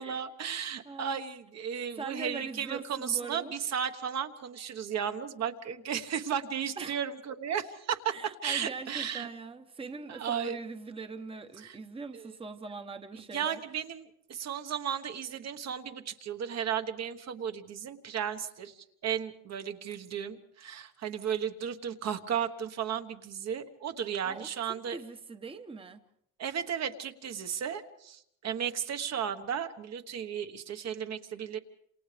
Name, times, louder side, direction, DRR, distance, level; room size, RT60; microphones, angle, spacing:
voice 1, 0.0-8.1 8.4-9.3 10.1-10.6 11.6-11.7 12.1-12.3 13.1-25.0 26.4-31.6, right 8 dB, 55° right, 1.4 m, -34 dB
voice 2, 0.8-1.2 1.9-3.5 6.8-7.0 8.1-13.6 24.2-26.0, right 4 dB, 15° right, 1.0 m, -42 dB
28.0 x 27.5 x 3.5 m
cardioid pair, 145°, 31 cm